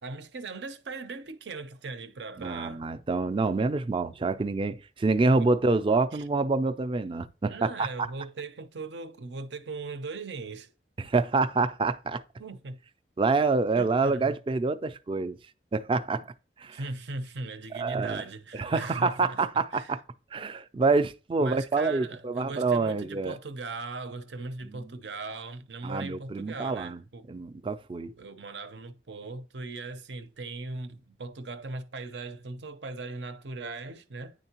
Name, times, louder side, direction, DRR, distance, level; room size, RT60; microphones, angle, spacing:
voice 1, 0.0-2.9 5.4-5.5 6.1-6.2 7.4-10.7 12.4-12.8 13.7-14.3 16.7-19.4 19.7-20.0 21.4-27.3 28.2-34.3, right 3 dB, 75° right, 0.6 m, -39 dB
voice 2, 2.4-8.1 11.0-12.2 13.2-15.4 15.7-16.3 16.6-16.8 17.8-18.2 18.5-20.0 20.3-23.4 24.6-24.8 25.8-27.0 27.3-28.1, right 3 dB, 30° right, 0.4 m, -27 dB
9.7 x 3.6 x 2.9 m
head